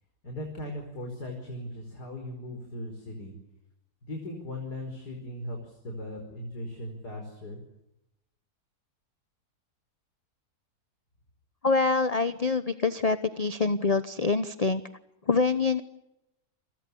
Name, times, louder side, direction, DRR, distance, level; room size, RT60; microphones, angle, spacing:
voice 1, 0.2-3.3 4.0-7.6, left 1 dB, 85° left, 3 dB, 5.6 m, -38 dB
voice 2, 11.6-14.8 15.3-15.8, left 4 dB, 30° left, 11 dB, 0.9 m, -25 dB
30.0 x 24.0 x 7.0 m, 0.89 s
omnidirectional pair, 1.7 m